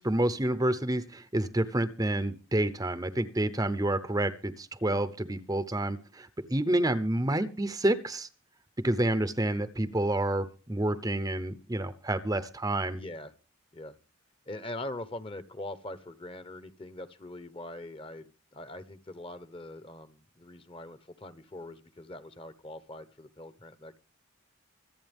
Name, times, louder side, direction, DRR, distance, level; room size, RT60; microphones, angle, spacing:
voice 1, 0.0-8.3 8.8-13.0, right 1 dB, 15° right, 12 dB, 0.7 m, -29 dB
voice 2, 12.9-13.3 13.7-14.0 14.5-24.0, left 1 dB, 25° left, 13 dB, 0.9 m, -42 dB
25.5 x 8.5 x 3.5 m, 0.36 s
head